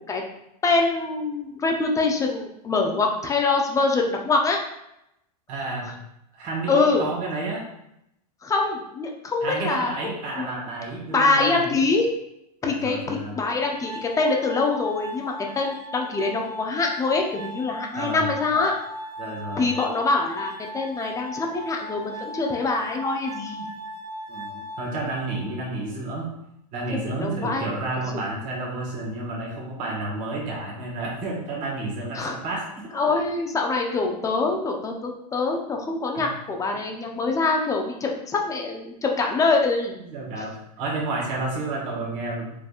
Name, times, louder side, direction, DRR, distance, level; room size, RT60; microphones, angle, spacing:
voice 1, 0.6-4.6 6.7-7.0 8.4-9.9 10.4-10.5 11.1-12.1 12.6-18.7 19.6-23.6 27.0-27.7 32.1-32.3 32.9-39.9, left 3 dB, 15° left, 1 dB, 0.6 m, -24 dB
voice 2, 5.5-5.9 6.3-7.6 9.4-11.6 12.6-13.4 17.9-18.3 19.2-19.7 24.3-26.3 26.7-32.9 36.1-36.2 40.0-42.5, right 2 dB, 40° right, -2 dB, 1.5 m, -31 dB
Glass, 13.6-25.6, left 1 dB, 85° right, 1.5 m, -38 dB
4.9 x 3.4 x 2.4 m, 0.81 s
hypercardioid pair, 125°, 21 cm